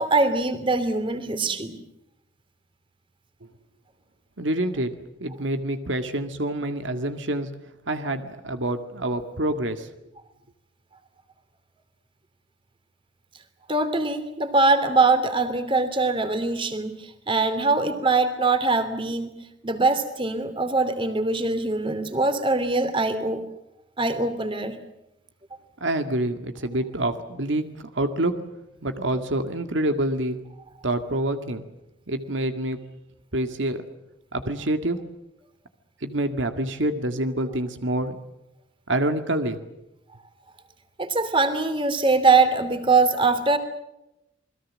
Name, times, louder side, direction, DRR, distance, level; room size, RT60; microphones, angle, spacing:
voice 1, 0.0-1.8 13.7-17.0 17.3-19.3 19.6-23.4 24.0-24.8 41.0-43.6, right 3 dB, 25° right, 10 dB, 2.9 m, -22 dB
voice 2, 4.4-4.9 5.2-7.5 7.9-9.9 25.8-28.4 28.8-30.4 30.8-31.6 32.1-32.8 33.3-33.8 34.3-35.0 36.0-38.2 38.9-39.6, right 1 dB, 75° right, 7 dB, 2.0 m, -27 dB
28.5 x 21.5 x 7.5 m, 0.87 s
head